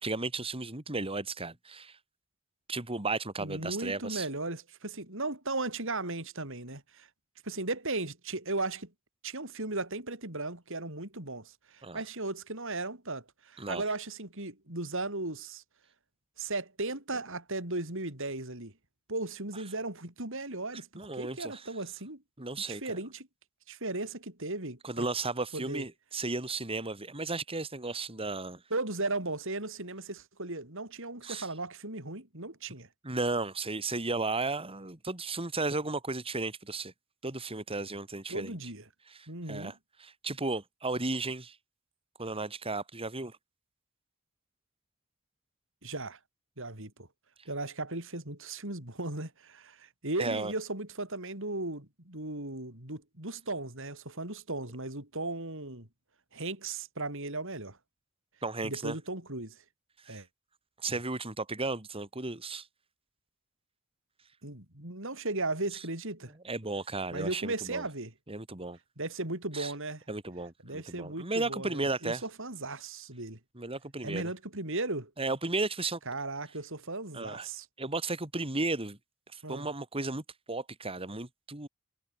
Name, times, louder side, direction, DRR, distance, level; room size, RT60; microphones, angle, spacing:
voice 1, 0.0-2.0 2.7-4.3 11.8-12.0 13.6-13.8 20.9-21.7 22.4-22.8 24.8-28.6 31.2-31.5 33.0-36.9 37.2-38.6 39.1-39.7 40.0-41.6 42.2-43.4 50.2-50.5 58.4-59.0 60.1-60.2 60.8-62.7 66.4-67.8 68.3-68.8 69.5-69.7 70.1-72.2 73.5-74.3 75.2-76.0 77.1-77.5 77.8-79.0 79.3-81.7, right 3 dB, 25° right, 2.7 m, -34 dB
voice 2, 3.4-7.1 7.4-8.9 9.2-15.6 16.4-18.7 19.1-20.9 21.1-22.2 22.7-23.3 23.7-25.1 25.5-25.9 28.7-32.9 38.3-38.8 39.3-39.7 45.8-46.2 46.6-47.1 47.5-55.9 56.3-57.8 58.6-59.6 60.1-60.3 64.4-66.3 67.1-68.1 69.0-70.0 70.6-73.4 74.0-75.1 76.1-77.7 79.4-79.7, right 2 dB, 65° right, 7.5 m, -36 dB
head